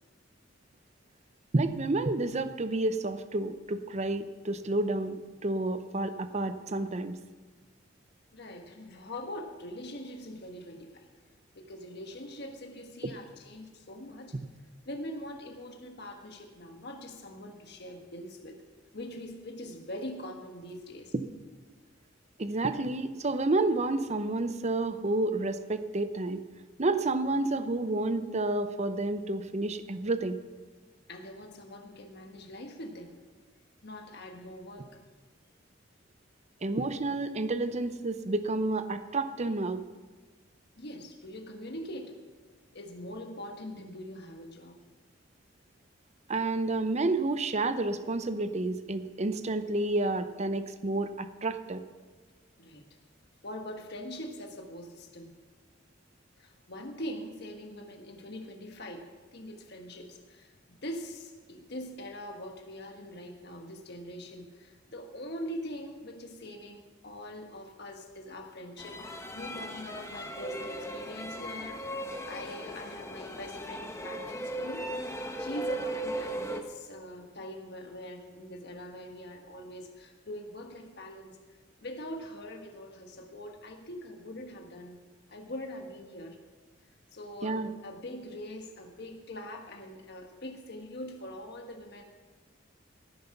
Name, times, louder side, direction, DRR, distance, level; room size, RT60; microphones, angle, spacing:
voice 1, 1.5-7.2 13.0-13.1 21.1-21.2 22.4-26.4 26.8-30.4 36.6-39.8 46.3-51.8 87.4-87.7, right 2 dB, 35° right, 11 dB, 0.7 m, -30 dB
voice 2, 8.3-11.1 11.5-14.4 14.8-18.6 18.9-21.1 31.1-33.2 33.8-34.9 40.8-42.2 42.7-44.8 52.6-52.9 53.4-55.3 56.4-74.8 75.4-81.4 81.8-85.0 85.3-86.4 87.1-92.0, left 1 dB, 60° left, 3 dB, 1.3 m, -43 dB
sound 1, 68.8-76.6, right 1 dB, 15° left, 1.0 m, -37 dB
16.5 x 9.6 x 5.9 m, 1.4 s
head